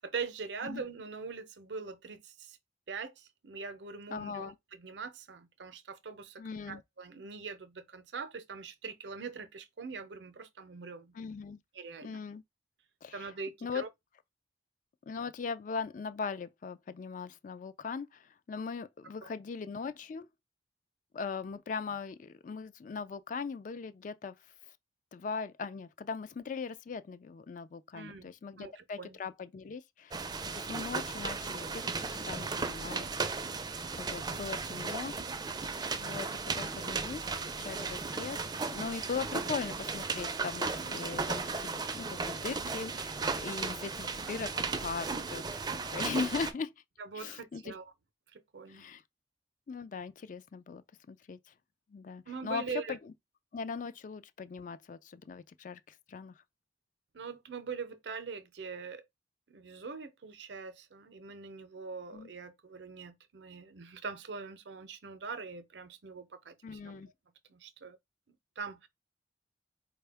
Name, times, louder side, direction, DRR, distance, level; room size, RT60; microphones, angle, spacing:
voice 1, 0.0-2.6 2.9-6.4 6.7-11.1 11.7-12.2 13.1-13.9 19.2-19.3 27.9-28.3 28.6-29.2 47.0-47.9 48.3-48.9 52.3-53.0 57.1-59.0 59.5-67.0 67.5-68.0 68.3-68.9, right 5 dB, 80° right, 0.6 m, -43 dB
voice 2, 4.1-4.6 6.4-6.8 11.1-11.6 12.0-12.4 13.0-13.3 13.6-13.8 15.0-20.3 21.1-24.4 25.1-33.1 34.0-35.2 36.0-36.3 36.5-37.3 37.6-45.6 45.9-46.7 47.1-47.7 48.7-49.0 49.7-51.4 51.9-53.1 53.5-56.3 62.1-62.3 66.6-67.1, left 5 dB, 45° left, 0.3 m, -40 dB
sound 1, 30.1-46.5, right 4 dB, 25° right, 0.4 m, -36 dB
4.3 x 2.2 x 3.4 m
head